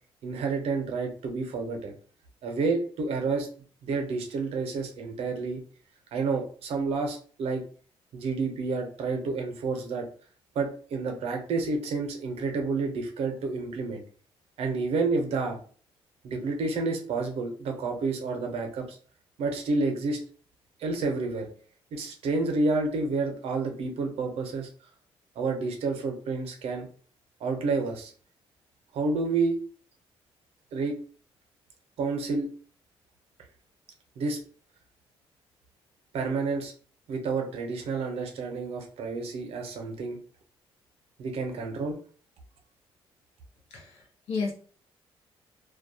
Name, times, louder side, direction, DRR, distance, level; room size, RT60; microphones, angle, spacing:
voice 1, 0.2-1.9 2.4-3.5 3.8-5.6 6.1-7.6 8.1-10.1 10.6-14.0 14.6-15.6 16.2-19.0 19.4-20.2 20.8-21.5 21.9-24.7 25.4-26.9 27.4-28.1 28.9-29.6 30.7-31.0 32.0-32.5 34.2-34.4 36.1-36.7 37.1-40.2 41.2-42.0, right 3 dB, 75° right, 3 dB, 0.6 m, -29 dB
voice 2, 43.7-44.5, left 4 dB, 90° left, -1 dB, 0.8 m, -32 dB
2.3 x 2.1 x 2.7 m, 0.44 s
cardioid pair, 80°, 10 cm